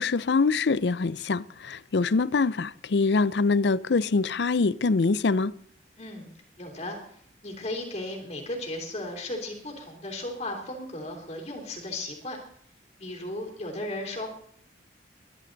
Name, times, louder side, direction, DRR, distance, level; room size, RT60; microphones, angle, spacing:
voice 1, 0.0-5.5, left 4 dB, 65° left, 0.5 m, -24 dB
voice 2, 6.0-6.3 6.6-7.0 7.4-12.4 13.0-14.3, left 1 dB, 35° left, 3.2 m, -35 dB
23.0 x 11.0 x 4.0 m
head